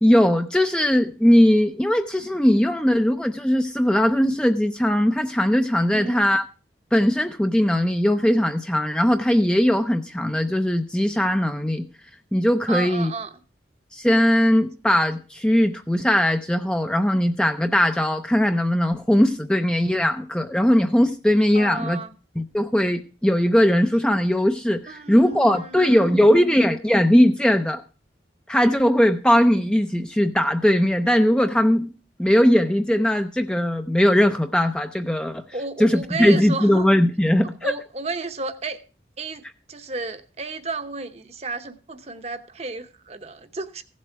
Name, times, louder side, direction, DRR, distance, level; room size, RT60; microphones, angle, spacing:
voice 1, 0.0-6.4 6.9-11.9 12.3-13.1 13.9-22.0 22.4-27.8 28.5-31.9 32.2-35.4 35.8-37.7, equal, 5° left, 0.5 m, -19 dB
voice 2, 5.9-6.3 12.7-13.3 21.5-22.1 24.9-26.3 35.5-36.9 37.6-38.8 39.2-39.4 39.7-43.8, right 3 dB, 35° right, 0.9 m, -33 dB
15.5 x 7.6 x 4.6 m
head